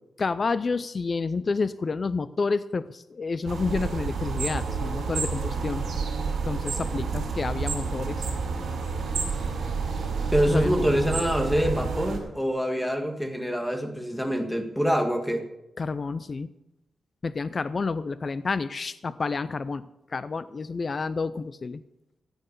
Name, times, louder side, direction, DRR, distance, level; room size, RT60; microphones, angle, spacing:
voice 1, 0.2-5.9 6.4-8.3 10.5-10.9 15.8-16.5 17.2-19.8 20.1-21.8, left 4 dB, 35° left, 15 dB, 0.4 m, -29 dB
sound 1, 3.5-12.2, right 5 dB, 70° right, 5.3 m, -29 dB
voice 2, 10.3-15.4, equal, ahead, 5 dB, 1.7 m, -25 dB
15.0 x 9.1 x 6.7 m, 0.92 s
wide cardioid pair, 150°, 0 cm